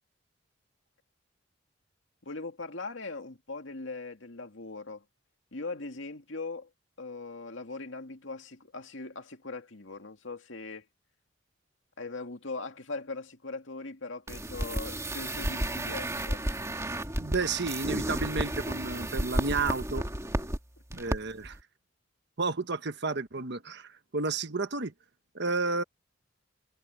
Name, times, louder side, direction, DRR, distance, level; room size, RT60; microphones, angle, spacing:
voice 1, 2.2-5.0 5.5-6.7 7.0-10.9 12.0-16.4, left 3 dB, 75° left, 2.3 m, -40 dB
sound 1, 14.3-20.6 20.9-21.2 21.4-21.6, right 1 dB, 15° right, 2.1 m, -32 dB
voice 2, 17.2-20.0 20.9-21.6 22.4-24.9 25.3-25.8, right 3 dB, 60° right, 1.3 m, -31 dB
head